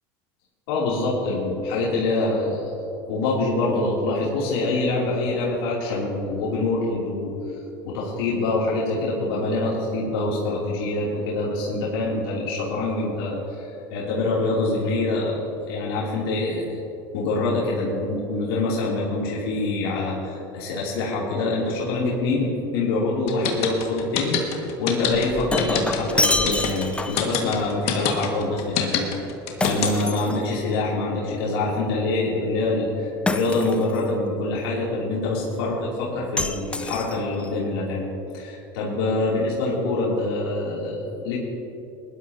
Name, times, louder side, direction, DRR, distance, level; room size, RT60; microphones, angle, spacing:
voice 1, 0.7-2.7 3.1-7.3 7.8-16.8 17.1-29.0 29.6-41.4, left 2 dB, 80° left, -6 dB, 2.9 m, -25 dB
sound 1, 23.3-30.2, left 9 dB, 55° left, 1.8 m, -25 dB
Shatter, 25.1-27.3 29.6-30.9 33.3-34.1 36.4-37.5, left 2 dB, 10° left, 0.6 m, -27 dB
20.0 x 12.0 x 2.8 m, 2.9 s
supercardioid pair, 105°, 12 cm